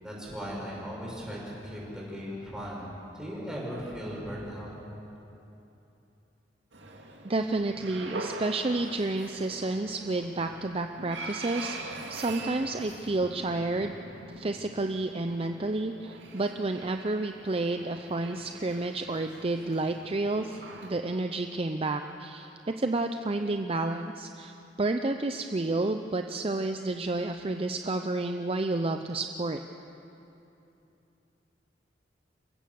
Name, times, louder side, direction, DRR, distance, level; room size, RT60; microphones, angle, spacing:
voice 1, 0.0-4.7, equal, 5° right, -5 dB, 6.0 m, -38 dB
sound 1, 6.7-20.9, right 2 dB, 85° right, 2.4 m, -43 dB
voice 2, 7.2-13.9 14.4-29.6, right 2 dB, 30° right, 6 dB, 0.6 m, -30 dB
29.0 x 16.0 x 7.0 m, 3.0 s
head